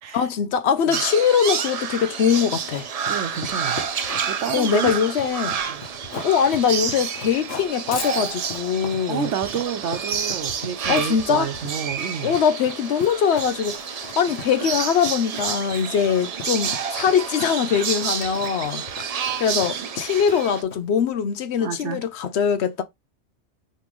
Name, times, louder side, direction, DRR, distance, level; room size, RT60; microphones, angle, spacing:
voice 1, 0.1-2.9 4.5-5.6 6.2-9.3 10.9-11.5 12.2-22.8, left 7 dB, 70° left, 0.9 m, -22 dB
sound 1, 0.9-20.6, right 7 dB, 50° right, 0.4 m, -29 dB
Run, 2.4-21.0, left 4 dB, 90° left, 1.4 m, -39 dB
voice 2, 3.1-3.9 4.3-4.9 5.7-5.8 9.1-12.3 21.6-22.0, right 7 dB, 80° right, 1.1 m, -29 dB
5.3 x 3.2 x 3.0 m
omnidirectional pair, 1.2 m